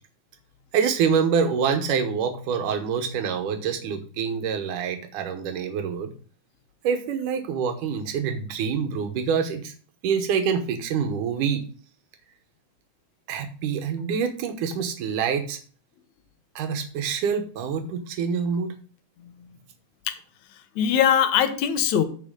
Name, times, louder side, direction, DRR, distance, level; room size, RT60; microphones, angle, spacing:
voice 1, 0.7-6.1 6.8-9.7 10.0-11.7 13.3-15.6 16.6-18.7, right 6 dB, 90° right, 6 dB, 2.6 m, -26 dB
voice 2, 20.5-22.0, left 9 dB, 70° left, 8 dB, 2.3 m, -22 dB
14.5 x 5.0 x 3.8 m, 0.43 s
omnidirectional pair, 3.5 m